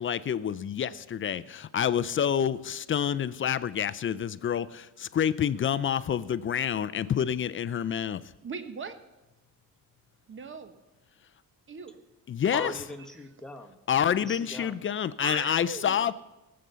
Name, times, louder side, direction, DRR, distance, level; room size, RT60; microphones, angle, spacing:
voice 1, 0.0-8.2 12.3-12.7 13.9-16.1, left 9 dB, 35° left, 16 dB, 0.4 m, -28 dB
voice 2, 8.4-9.0 10.3-10.7 11.7-12.0 15.2-16.0, right 5 dB, 35° right, 10 dB, 1.0 m, -39 dB
voice 3, 12.5-14.8, left 1 dB, ahead, 4 dB, 1.1 m, -41 dB
18.5 x 7.6 x 6.8 m, 1.0 s
cardioid pair, 155°, 35 cm